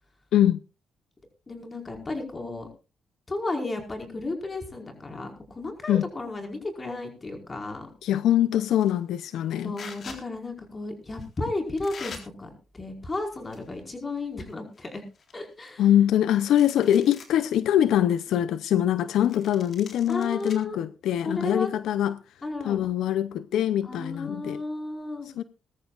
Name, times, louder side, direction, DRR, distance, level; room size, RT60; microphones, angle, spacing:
voice 1, 1.5-2.7 3.3-7.9 9.6-12.5 12.7-15.0 15.3-15.8 20.1-20.8 21.2-21.7 22.4-22.9 23.8-25.3, left 2 dB, 25° left, 4.9 m, -33 dB
voice 2, 8.0-9.8 15.8-22.2 22.6-24.6 25.4-25.5, left 11 dB, 80° left, 0.6 m, -23 dB
sound 1, 8.7-9.0 9.7-10.2 11.1-11.3 11.8-12.2 13.1-13.8 14.1-14.2 14.7-14.8 15.1-16.2 16.5-17.3 17.8-17.9 19.3-20.5, left 5 dB, 50° left, 3.8 m, -44 dB
21.0 x 14.0 x 2.5 m
cardioid pair, 90°, 0 cm